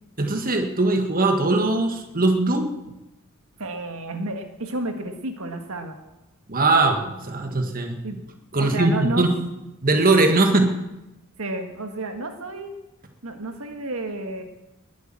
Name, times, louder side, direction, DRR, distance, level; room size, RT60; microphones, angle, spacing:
voice 1, 0.2-2.7 6.5-8.0 8.5-9.3 9.8-10.7, right 2 dB, 40° right, 5 dB, 1.8 m, -20 dB
voice 2, 3.6-6.0 8.0-8.2 8.6-9.3 11.4-12.7 13.2-14.4, right 1 dB, 70° right, 6 dB, 1.8 m, -30 dB
21.0 x 8.5 x 7.6 m, 0.96 s
head